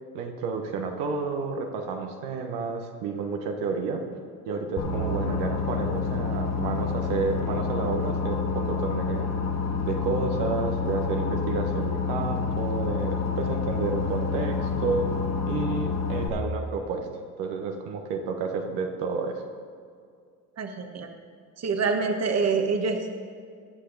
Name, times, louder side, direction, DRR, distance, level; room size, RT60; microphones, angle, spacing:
voice 1, 0.1-4.0 4.5-9.3 9.9-15.1 15.5-17.1 17.4-19.4, right 4 dB, 75° right, 3 dB, 1.3 m, -30 dB
Boat Water vehicle, 4.8-16.3, left 5 dB, 40° left, 1.6 m, -28 dB
voice 2, 20.6-21.1 21.6-23.1, right 4 dB, 35° right, 5 dB, 1.4 m, -26 dB
19.0 x 6.7 x 4.0 m, 2.2 s
supercardioid pair, 75°, 42 cm